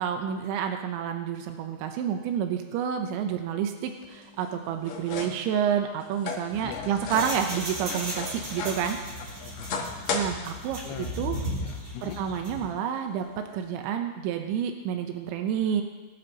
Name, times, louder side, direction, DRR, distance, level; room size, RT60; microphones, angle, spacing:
voice 1, 0.0-9.0 10.1-10.8 11.2-11.4 12.0-13.3 13.5-15.8, right 8 dB, 85° right, 5 dB, 3.3 m, -29 dB
sound 1, 3.9-13.7, left 4 dB, 60° left, 2.5 m, -38 dB
sound 2, 6.5-12.7, equal, 40° right, 3.8 m, -36 dB
voice 2, 6.6-7.3 9.2-10.1 10.8-11.2 11.6-12.2, left 10 dB, 85° left, 6 dB, 3.2 m, -43 dB
20.5 x 11.0 x 3.0 m, 1.2 s
omnidirectional pair, 5.1 m